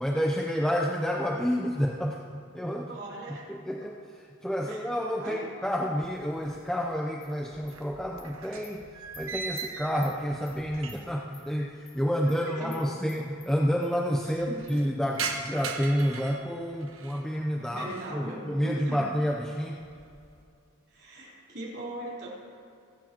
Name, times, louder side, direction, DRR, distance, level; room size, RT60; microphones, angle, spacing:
voice 1, 0.0-2.9 3.5-8.8 9.2-19.8, equal, 5° left, -1 dB, 0.6 m, -29 dB
voice 2, 2.9-3.5 4.7-4.8 5.2-5.5 12.1-12.9 14.2-14.7 17.6-19.0 20.9-22.3, right 1 dB, 50° right, -5 dB, 3.5 m, -40 dB
sound 1, 6.0-6.9 7.2-11.3 11.6-11.7 12.5-12.6 12.8-12.9 13.2-13.7 14.1-17.3 17.7-18.2 18.7-19.1 19.5-20.4, right 5 dB, 70° right, 1.1 m, -40 dB
Animal, 7.2-7.3 7.7-7.8 8.2-8.3 8.6-8.7 9.1-9.2 9.6-9.7 10.0-10.1 10.5-10.6 10.9-11.0 11.3-11.4 11.8-12.0 12.3-12.4 12.7-12.8 13.1-13.5 13.8-13.9 14.2-14.3 14.7-14.8 15.1-15.2 15.6-15.7 16.0-16.1, left 8 dB, 80° left, 3.5 m, -50 dB
27.5 x 9.9 x 3.0 m, 2.4 s
head